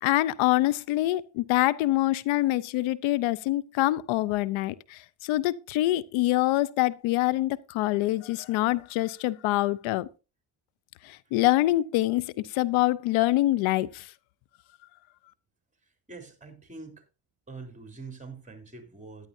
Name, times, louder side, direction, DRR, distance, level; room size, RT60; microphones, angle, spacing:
voice 1, 0.0-10.1 11.0-14.1, left 17 dB, 90° left, 0.7 m, -25 dB
voice 2, 16.1-17.0 17.5-19.3, right 4 dB, 15° right, 3.6 m, -44 dB
15.0 x 10.5 x 2.7 m
supercardioid pair, 70°, 46 cm